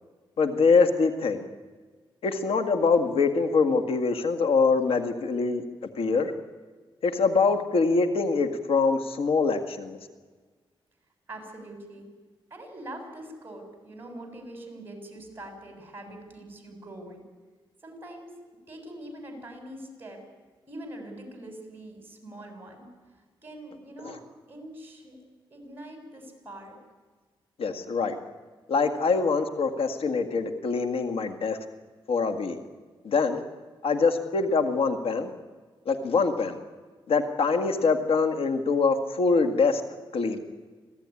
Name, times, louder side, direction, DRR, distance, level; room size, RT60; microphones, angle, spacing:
voice 1, 0.4-1.4 2.2-5.6 6.0-6.3 7.0-10.0 24.0-24.2 27.6-28.2 28.7-31.6 32.1-32.6 33.0-33.4 33.8-35.3 35.9-36.6 37.1-39.8 40.1-40.4, left 4 dB, 85° left, 7 dB, 1.9 m, -24 dB
voice 2, 11.3-12.1 12.5-17.2 17.8-18.3 18.7-20.2 20.7-22.9 23.4-25.2 25.5-26.8, right 1 dB, 25° right, 4 dB, 6.8 m, -43 dB
26.0 x 16.5 x 9.8 m, 1.4 s
wide cardioid pair, 125°, 9 cm